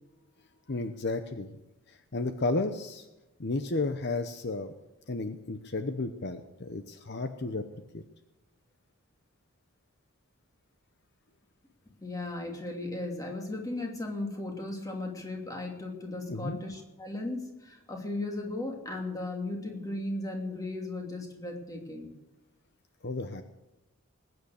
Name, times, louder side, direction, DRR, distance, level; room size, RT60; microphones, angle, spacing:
voice 1, 0.7-1.5 1.9-3.1 3.4-4.7 5.1-7.6 7.9-8.0 16.3-16.6 23.0-23.4, left 3 dB, 55° left, 8 dB, 0.9 m, -33 dB
voice 2, 12.0-22.2, left 2 dB, 15° left, 1 dB, 2.8 m, -36 dB
20.0 x 9.5 x 6.6 m, 1.1 s
head